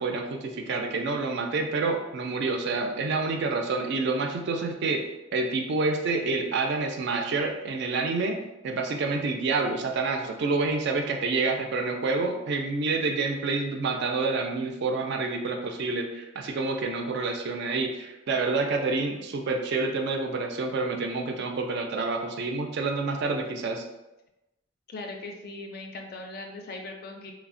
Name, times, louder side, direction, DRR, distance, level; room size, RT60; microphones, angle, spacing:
voice 1, 0.0-5.0 5.3-8.4 8.6-23.8, right 3 dB, 55° right, 3 dB, 0.3 m, -28 dB
voice 2, 24.9-27.3, left 2 dB, 50° left, 3 dB, 0.3 m, -39 dB
3.1 x 2.0 x 2.5 m, 0.97 s
head